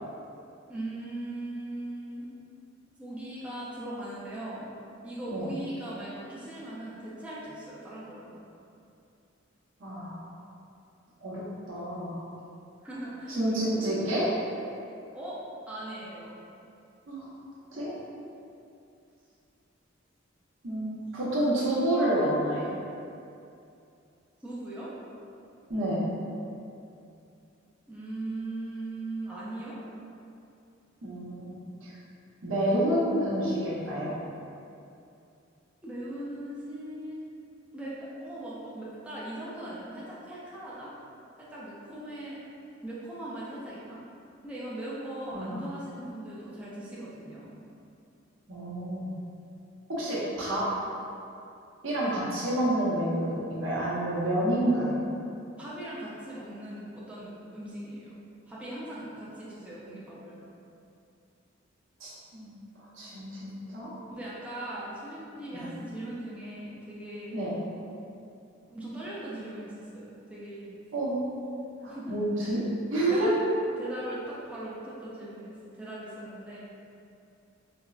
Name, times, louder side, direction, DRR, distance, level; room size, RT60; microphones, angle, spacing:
voice 1, 0.7-2.3 3.0-4.7 5.0-8.3 12.8-13.9 15.1-15.4 15.7-16.3 24.4-24.9 27.9-29.8 35.8-37.2 37.7-40.9 41.4-42.4 42.8-44.0 44.4-47.6 52.0-52.2 55.6-58.1 58.5-60.4 64.1-67.4 68.7-70.8 71.9-72.6 73.1-73.4 73.8-76.6, right 1 dB, 5° right, -9 dB, 0.4 m, -39 dB
voice 2, 9.8-10.2 11.2-12.2 13.3-14.3 17.1-17.3 17.7-17.9 20.6-22.7 25.7-26.0 31.0-31.9 32.4-34.1 45.3-45.6 48.5-49.1 49.9-50.6 51.8-55.0 62.0-63.9 65.5-65.7 67.3-67.5 70.9-71.2 71.8-72.6 72.9-73.3, right 1 dB, 80° right, -8 dB, 0.8 m, -29 dB
4.4 x 2.0 x 2.3 m, 2.6 s
head